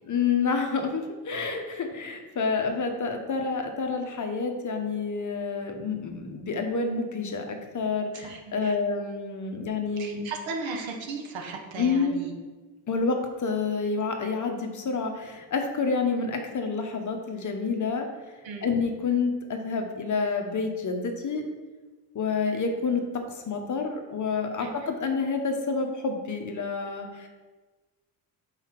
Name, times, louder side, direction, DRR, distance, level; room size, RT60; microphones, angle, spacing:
voice 1, 0.1-10.3 11.8-12.2 12.9-18.1 18.6-21.4 22.1-23.0 23.3-27.3, left 4 dB, 40° left, 4 dB, 0.9 m, -28 dB
voice 2, 8.1-8.8 10.0-12.3 18.4-18.7 24.6-24.9, right 4 dB, 65° right, 2 dB, 1.3 m, -36 dB
5.5 x 4.9 x 4.5 m, 1.3 s
cardioid pair, 95°, 49 cm